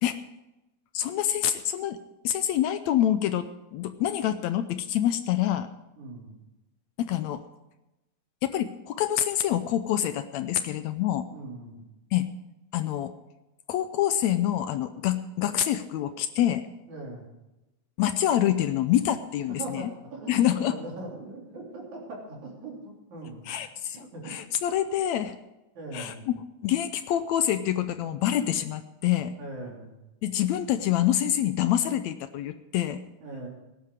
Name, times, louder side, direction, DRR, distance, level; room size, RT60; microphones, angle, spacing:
voice 1, 0.9-2.0 2.2-5.7 7.0-7.4 8.4-11.3 12.1-12.3 12.7-13.1 13.7-16.7 18.0-19.9 20.3-20.8 23.5-25.4 25.9-26.1 26.6-29.3 30.2-33.0, left 11 dB, 80° left, 11 dB, 1.8 m, -26 dB
voice 2, 6.0-6.3 11.3-11.8 16.9-17.3 19.5-23.5 23.9-24.3 25.7-26.2 29.4-29.9 33.2-33.5, right 2 dB, 70° right, -2 dB, 5.0 m, -40 dB
18.5 x 10.5 x 4.8 m, 0.99 s
omnidirectional pair, 3.5 m